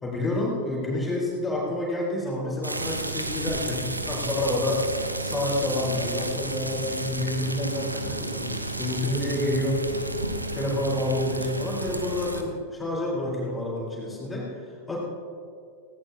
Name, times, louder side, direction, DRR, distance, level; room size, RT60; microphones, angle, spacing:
voice 1, 0.0-4.9 5.2-9.9 10.5-14.5 14.9-15.0, left 1 dB, 10° left, -4 dB, 4.3 m, -28 dB
sound 1, 2.6-12.4, right 2 dB, 85° right, 1.0 m, -32 dB
18.5 x 18.0 x 2.9 m, 2.3 s
figure-of-eight pair, 90°, 0 cm